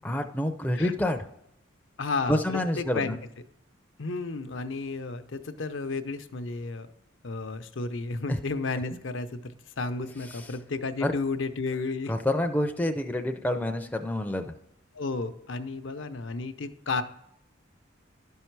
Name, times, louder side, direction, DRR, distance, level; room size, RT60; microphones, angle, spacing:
voice 1, 0.0-1.3 2.3-3.2 8.3-8.4 10.3-10.5 11.0-11.1 12.1-14.5, left 1 dB, 10° left, 5 dB, 0.4 m, -28 dB
voice 2, 2.0-3.2 4.0-6.9 7.2-12.1 14.9-17.0, left 3 dB, 75° left, 8 dB, 0.7 m, -32 dB
12.0 x 5.5 x 4.6 m, 0.77 s
head